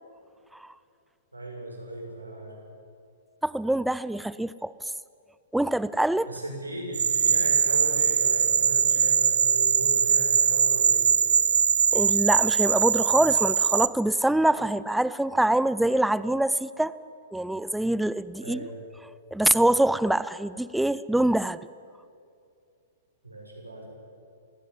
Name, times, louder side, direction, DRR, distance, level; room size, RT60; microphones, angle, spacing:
voice 1, 1.3-2.6 6.3-11.1 18.4-18.8 23.2-23.9, right 1 dB, 90° right, 0 dB, 6.9 m, -37 dB
voice 2, 3.4-4.7 5.5-6.3 11.9-17.0 17.3-18.6 19.3-21.6, right 1 dB, 5° right, 17 dB, 0.7 m, -24 dB
sound 1, 6.9-13.9, right 7 dB, 65° right, 0.9 m, -22 dB
26.5 x 17.5 x 9.6 m, 2.5 s
figure-of-eight pair, 110°, 0 cm